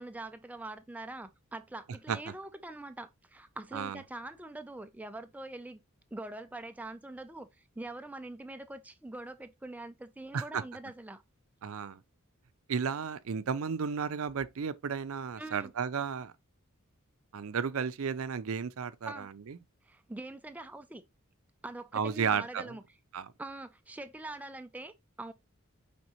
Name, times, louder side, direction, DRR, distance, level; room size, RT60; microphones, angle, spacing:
voice 1, 0.0-5.8 6.1-7.5 7.8-11.2 15.4-15.7 19.1-19.3 19.8-21.0 21.6-22.8 23.4-25.3, right 2 dB, 5° right, 0.4 m, -43 dB
voice 2, 11.6-12.0 12.7-16.3 17.3-19.6 21.9-22.8 23.1-23.3, right 6 dB, 75° right, 0.5 m, -33 dB
5.2 x 3.5 x 2.9 m
head